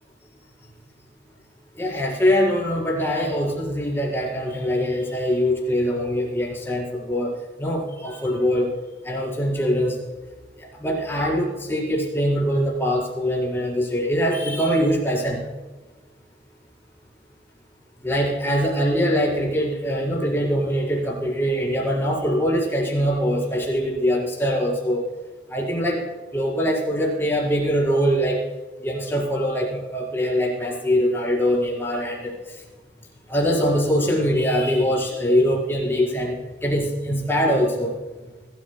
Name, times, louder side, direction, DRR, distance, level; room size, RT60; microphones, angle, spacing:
voice 1, 1.8-7.3 7.6-8.7 9.0-10.0 10.6-15.4 18.0-25.0 25.5-26.0 26.3-28.4 28.8-32.3 33.3-36.4 36.6-37.9, equal, 15° left, -3 dB, 4.6 m, -23 dB
25.5 x 14.0 x 2.3 m, 1.3 s
head